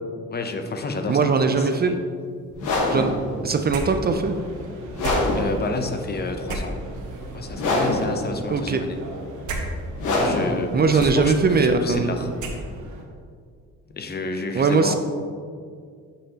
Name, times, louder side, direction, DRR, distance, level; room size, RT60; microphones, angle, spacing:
voice 1, 0.3-1.3 1.6-2.0 5.0-6.8 7.3-9.0 10.1-12.3 13.9-15.0, left 3 dB, 35° left, 6 dB, 0.7 m, -30 dB
voice 2, 1.1-2.0 2.9-3.1 3.4-4.4 8.5-8.8 10.7-12.2 14.6-15.0, right 4 dB, 35° right, 7 dB, 0.4 m, -20 dB
sound 1, 2.5-12.4, left 2 dB, 80° left, 1.3 m, -27 dB
sound 2, 3.7-13.0, right 1 dB, 75° right, 1.1 m, -35 dB
8.5 x 5.6 x 2.8 m, 2.1 s
cardioid pair, 90°, 30 cm